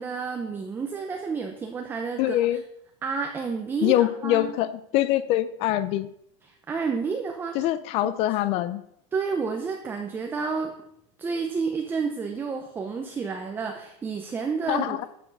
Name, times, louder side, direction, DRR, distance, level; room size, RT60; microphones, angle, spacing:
voice 1, 0.0-2.4 3.0-4.6 6.7-7.7 8.0-8.1 9.1-10.7 11.2-15.1, right 5 dB, 10° right, 4 dB, 0.7 m, -30 dB
voice 2, 2.2-2.6 3.8-6.1 7.5-8.8 14.7-15.1, left 14 dB, 35° left, 15 dB, 0.4 m, -24 dB
12.0 x 7.0 x 5.3 m, 0.75 s
supercardioid pair, 170°, 17 cm